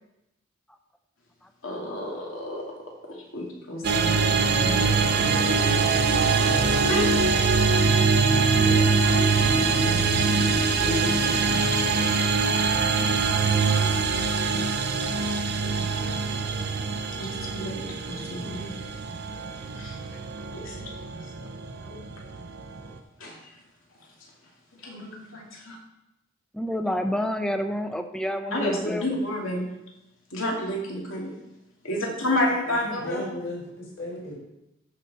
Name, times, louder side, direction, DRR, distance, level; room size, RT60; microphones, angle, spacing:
voice 1, 1.6-2.6 3.0-5.8 6.8-7.1 8.6-11.9 15.2-15.4 17.2-18.8 19.7-20.0 20.5-21.3 21.8-22.0 23.2-23.4 24.8-25.8 28.5-29.7 30.3-31.3 31.8-33.2, left 1 dB, 80° left, -2 dB, 2.5 m, -32 dB
sound 1, 3.8-23.0, right 4 dB, 55° right, 0.7 m, -23 dB
voice 2, 26.5-29.1, equal, 5° left, 7 dB, 0.6 m, -28 dB
voice 3, 32.6-34.4, left 1 dB, 65° left, -6 dB, 4.0 m, -35 dB
13.0 x 5.8 x 4.2 m, 0.92 s
head